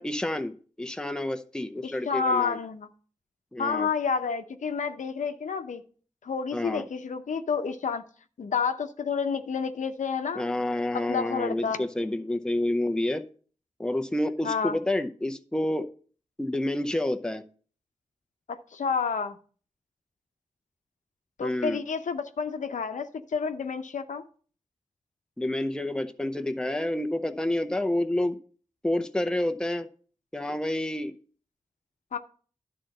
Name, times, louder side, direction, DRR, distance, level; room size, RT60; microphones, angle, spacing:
voice 1, 0.0-2.6 3.5-3.9 6.5-6.9 10.4-13.2 13.8-15.9 16.4-17.4 21.4-21.8 25.4-28.4 28.8-29.9 30.3-31.2, left 1 dB, 5° left, 7 dB, 0.7 m, -29 dB
voice 2, 1.8-2.9 3.6-5.8 6.2-8.0 8.4-10.4 10.9-11.9 14.4-14.8 18.5-19.4 21.4-24.2 32.1-32.2, left 5 dB, 90° left, 8 dB, 0.8 m, -29 dB
11.5 x 3.9 x 6.5 m, 0.42 s
wide cardioid pair, 85°, 12 cm